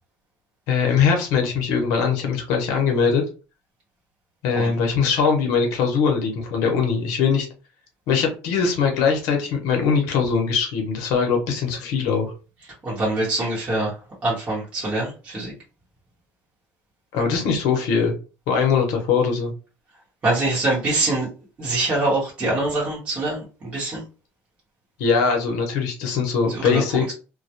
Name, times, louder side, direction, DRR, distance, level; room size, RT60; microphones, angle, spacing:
voice 1, 0.7-3.2 4.4-7.5 8.1-12.3 17.1-18.2 18.5-19.5 25.0-27.1, left 6 dB, 75° left, 2 dB, 0.7 m, -21 dB
voice 2, 12.8-13.9 14.2-15.5 20.2-21.3 21.6-23.4 23.7-24.0 26.6-26.8, right 2 dB, 20° right, -6 dB, 0.9 m, -23 dB
2.2 x 2.0 x 2.7 m, 0.34 s
cardioid pair, 170°, 6 cm